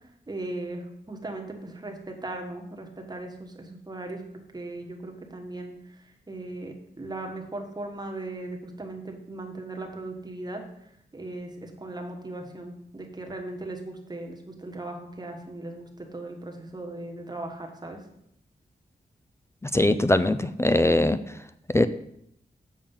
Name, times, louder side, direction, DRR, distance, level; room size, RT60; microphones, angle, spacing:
voice 1, 0.3-4.2 4.5-10.6 11.1-18.0, right 2 dB, 25° right, 2 dB, 1.4 m, -38 dB
voice 2, 19.7-21.2 21.7-21.9, left 1 dB, 15° left, 11 dB, 0.3 m, -21 dB
7.3 x 6.8 x 5.5 m, 0.75 s
wide cardioid pair, 140°, 17 cm